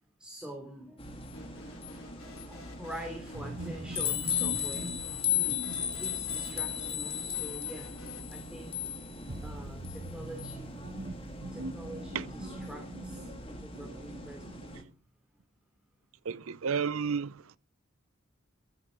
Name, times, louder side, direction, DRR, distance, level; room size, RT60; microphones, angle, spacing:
voice 1, 0.2-1.4 2.5-4.9 5.4-7.9 8.3-8.7 9.4-10.8 11.5-14.6, right 1 dB, 5° right, 3.0 m, -45 dB
sound 1, 1.0-14.8, left 8 dB, 25° left, 2.0 m, -37 dB
sound 2, 1.3-8.2, left 1 dB, 90° left, 3.3 m, -52 dB
sound 3, 3.3-14.9, right 1 dB, 50° right, 1.1 m, -44 dB
voice 2, 16.2-17.6, right 6 dB, 80° right, 0.6 m, -32 dB
15.0 x 13.0 x 5.2 m
head